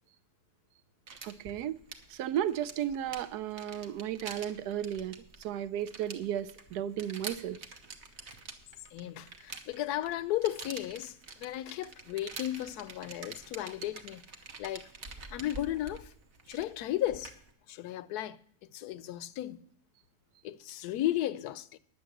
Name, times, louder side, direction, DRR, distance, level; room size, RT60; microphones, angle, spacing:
sound 1, 1.1-17.5, right 4 dB, 50° right, 1.2 m, -47 dB
voice 1, 1.2-1.8 2.1-7.7, right 10 dB, 85° right, 1.2 m, -34 dB
voice 2, 8.9-14.2 14.6-14.9 15.3-16.1 16.5-17.4 17.7-18.4 18.7-19.6 20.4-21.8, left 13 dB, 80° left, 1.1 m, -34 dB
10.0 x 7.0 x 7.7 m
omnidirectional pair, 1.7 m